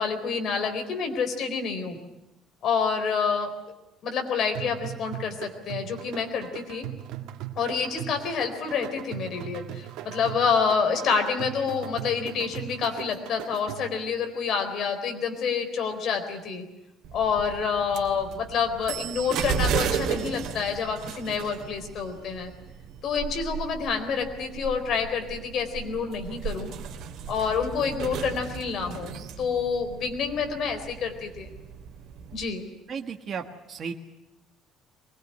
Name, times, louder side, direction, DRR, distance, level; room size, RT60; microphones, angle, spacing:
voice 1, 0.0-2.0 2.6-3.5 4.0-6.9 7.6-16.6 17.1-22.5 23.0-26.7 27.3-31.5 32.3-32.6, left 6 dB, 45° left, 5 dB, 4.1 m, -28 dB
sound 1, 4.5-14.1, right 12 dB, 85° right, 2.0 m, -39 dB
sound 2, 17.0-32.4, right 7 dB, 55° right, 2.9 m, -35 dB
voice 2, 32.9-33.9, right 6 dB, 30° right, 4 dB, 1.5 m, -34 dB
23.5 x 21.0 x 10.0 m, 0.95 s
cardioid pair, 175°, 0 cm